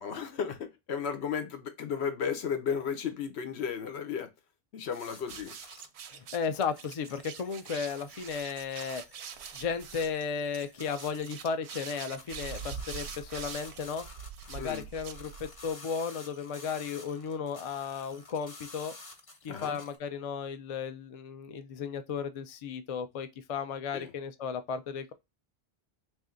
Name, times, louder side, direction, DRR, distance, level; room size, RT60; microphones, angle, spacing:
voice 1, 0.0-4.3 4.7-5.5 14.6-14.8 19.5-19.8 23.9-24.1, left 7 dB, 85° left, 1.0 m, -34 dB
sound 1, 4.9-6.0 6.4-6.5 6.7-11.4 11.7-20.0, left 2 dB, 35° left, 0.8 m, -51 dB
sound 2, 5.2-15.7, right 7 dB, 90° right, 0.8 m, -44 dB
voice 2, 6.1-9.0 9.5-14.0 14.5-18.9 19.4-25.1, left 6 dB, 50° left, 0.4 m, -35 dB
3.3 x 2.6 x 3.6 m
omnidirectional pair, 1.1 m